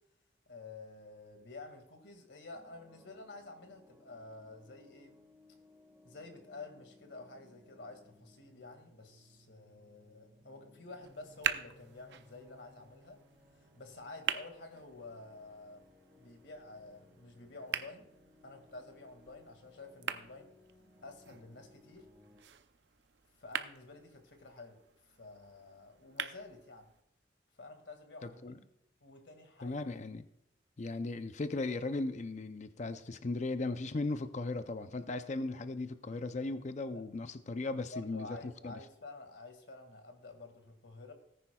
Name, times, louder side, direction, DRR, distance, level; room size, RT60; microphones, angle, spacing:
voice 1, 0.5-5.1 6.0-13.2 13.5-18.1 18.4-20.5 21.0-22.1 23.4-24.8 25.1-26.9 27.6-28.6 29.0-29.8 36.9-37.0 37.9-41.1, left 3 dB, 80° left, 5 dB, 2.0 m, -50 dB
sound 1, 2.5-22.4, left 2 dB, 15° right, 1.7 m, -63 dB
sound 2, 11.0-27.0, right 8 dB, 70° right, 0.6 m, -44 dB
voice 2, 28.2-28.6 29.6-30.3 30.8-38.7, left 2 dB, 40° left, 10 dB, 0.5 m, -37 dB
18.5 x 10.0 x 2.3 m, 0.79 s
head